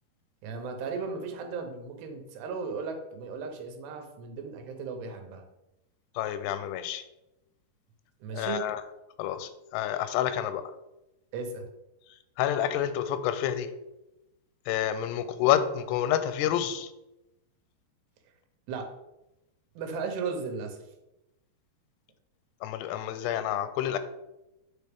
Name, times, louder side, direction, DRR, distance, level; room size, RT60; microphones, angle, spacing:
voice 1, 0.4-5.4 8.2-8.6 11.3-11.7 18.7-18.9 19.8-20.8, right 5 dB, 85° right, 4 dB, 3.0 m, -36 dB
voice 2, 6.2-7.0 8.3-8.8 9.2-10.6 12.4-13.7 14.7-16.9 22.6-24.0, left 10 dB, 90° left, 11 dB, 2.7 m, -28 dB
8.2 x 4.3 x 3.5 m, 0.93 s
omnidirectional pair, 4.7 m